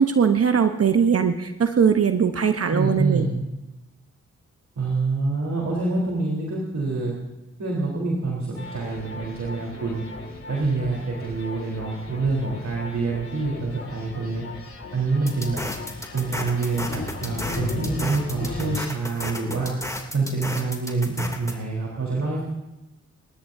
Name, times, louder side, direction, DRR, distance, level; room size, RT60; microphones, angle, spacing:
voice 1, 0.0-3.2, right 7 dB, 50° right, 7 dB, 1.1 m, -20 dB
voice 2, 2.7-3.3 4.8-7.1 7.6-10.0 10.5-14.4 14.9-15.6 16.1-19.7 20.1-22.4, right 3 dB, 65° right, -3 dB, 4.0 m, -26 dB
sound 1, 8.5-18.8, left 3 dB, 50° left, 6.8 m, -37 dB
sound 2, 15.3-21.5, left 1 dB, 10° left, 2.8 m, -33 dB
28.0 x 13.0 x 2.8 m, 0.98 s
cardioid pair, 50°, 30 cm